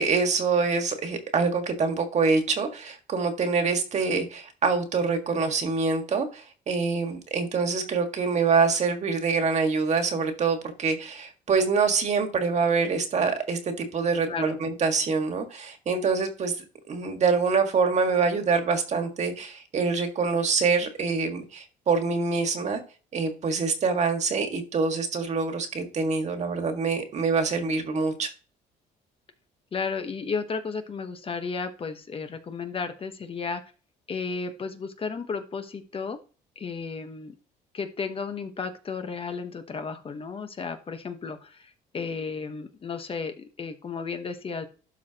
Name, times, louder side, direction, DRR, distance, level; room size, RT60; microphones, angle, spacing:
voice 1, 0.0-16.5 16.9-22.8 23.1-28.3, right 4 dB, 40° right, 1.8 m, -25 dB
voice 2, 14.3-14.6 29.7-33.6 34.1-36.2 36.6-37.3 37.7-44.7, left 5 dB, 35° left, 1.1 m, -33 dB
12.0 x 4.9 x 2.9 m
cardioid pair, 110°, 17 cm